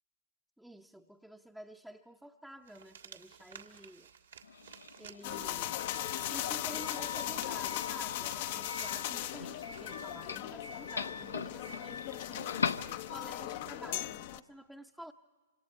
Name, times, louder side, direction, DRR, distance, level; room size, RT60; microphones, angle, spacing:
voice 1, 0.6-4.1 5.0-5.9 6.2-12.5 13.1-15.1, right 1 dB, ahead, 1 dB, 0.7 m, -50 dB
sound 1, 2.7-10.2, right 7 dB, 75° right, 1.7 m, -55 dB
Doorbell, 4.4-13.5, left 5 dB, 85° left, 0.8 m, -42 dB
sound 2, 5.2-14.4, left 13 dB, 50° left, 0.7 m, -38 dB
27.0 x 26.5 x 4.5 m, 1.5 s
hypercardioid pair, 115°, 0 cm